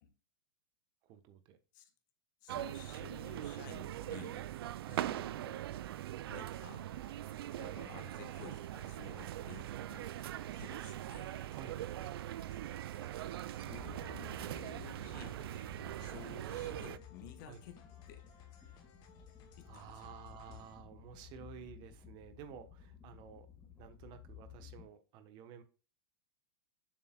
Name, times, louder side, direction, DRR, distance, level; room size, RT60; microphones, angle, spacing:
voice 1, 1.0-1.6 4.8-5.0 11.2-12.1 17.4-17.6 18.6-18.9 19.6-23.5 23.8-25.6, right 7 dB, 35° right, 1.1 m, -53 dB
voice 2, 2.4-4.5 4.9-5.6 6.3-10.2 10.5-11.4 13.6-15.4 16.0-17.8 18.1-18.3 19.6-19.9, left 8 dB, 50° left, 1.4 m, -54 dB
sound 1, 2.5-17.0, right 13 dB, 75° right, 0.4 m, -42 dB
sound 2, 6.4-20.8, left 6 dB, 35° left, 1.5 m, -63 dB
sound 3, 13.6-24.9, left 9 dB, 10° left, 2.0 m, -55 dB
7.3 x 6.9 x 2.3 m
hypercardioid pair, 140°, 13 cm